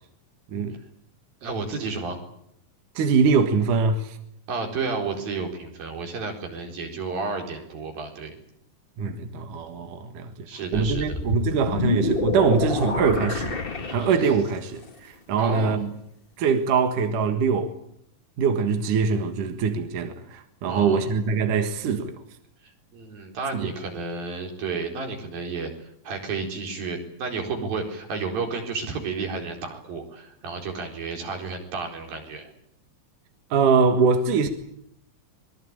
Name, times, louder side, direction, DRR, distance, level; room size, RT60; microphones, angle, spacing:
voice 1, 1.4-2.2 4.5-8.4 10.5-11.2 15.4-15.8 20.6-21.1 22.9-25.7 26.0-32.5, right 4 dB, 80° right, 6.2 m, -31 dB
voice 2, 3.0-4.2 9.0-10.5 10.7-13.6 13.9-15.9 16.4-17.8 18.4-22.2 23.5-23.7 33.5-34.5, right 5 dB, 65° right, 3.1 m, -23 dB
sound 1, 10.7-14.7, left 3 dB, 55° left, 0.6 m, -28 dB
26.0 x 22.5 x 8.9 m
omnidirectional pair, 4.1 m